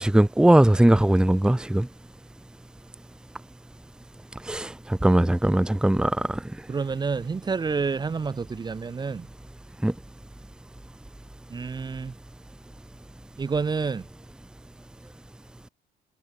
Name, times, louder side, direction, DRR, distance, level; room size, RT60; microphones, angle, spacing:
voice 1, 0.0-1.9 4.5-6.4 9.8-9.9, right 1 dB, 5° right, 1.1 m, -20 dB
voice 2, 6.7-9.3 11.5-12.1 13.4-14.0, right 5 dB, 25° right, 1.3 m, -28 dB
cardioid pair, 110°, 17 cm